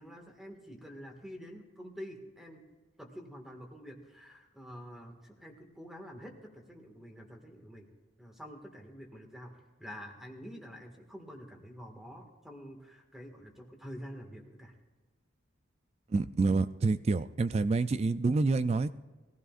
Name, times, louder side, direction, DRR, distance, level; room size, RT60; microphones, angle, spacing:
voice 1, 0.0-2.6 3.0-7.9 8.2-14.7, equal, ahead, 2 dB, 1.8 m, -47 dB
voice 2, 16.1-18.9, right 3 dB, 30° right, 13 dB, 0.3 m, -27 dB
21.5 x 15.0 x 2.5 m, 1.3 s
head